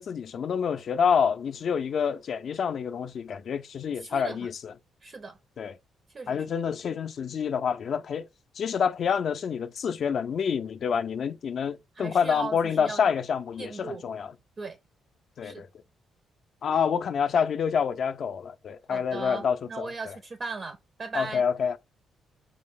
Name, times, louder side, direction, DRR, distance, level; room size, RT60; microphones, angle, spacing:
voice 1, 0.0-4.7 5.6-5.7 6.3-8.3 8.6-14.3 15.4-15.7 16.6-20.1 21.1-21.8, left 7 dB, 55° left, 0.3 m, -27 dB
voice 2, 4.0-4.5 5.0-5.4 6.1-6.4 11.9-13.1 13.6-14.0 14.6-14.8 15.4-15.7 18.9-21.4, right 4 dB, 35° right, 0.4 m, -37 dB
5.3 x 2.0 x 3.4 m
cardioid pair, 120°, 0 cm